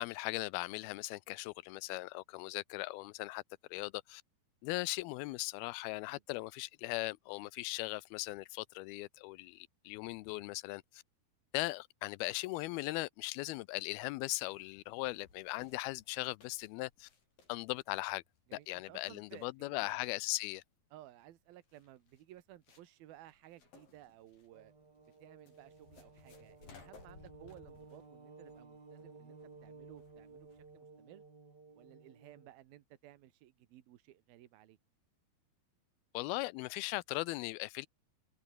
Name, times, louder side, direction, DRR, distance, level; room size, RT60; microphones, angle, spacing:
voice 1, 0.0-3.4 3.7-4.2 4.6-11.0 11.5-17.1 17.5-18.2 18.5-20.6 36.1-37.9, left 21 dB, 90° left, 2.6 m, -39 dB
sound 1, 14.2-30.8, left 5 dB, 65° left, 7.1 m, -63 dB
voice 2, 18.5-20.0 20.9-24.7 25.2-31.2 31.7-34.8, right 14 dB, 80° right, 3.3 m, -57 dB
sound 2, 24.5-32.5, right 4 dB, 30° right, 3.9 m, -56 dB
omnidirectional pair, 4.3 m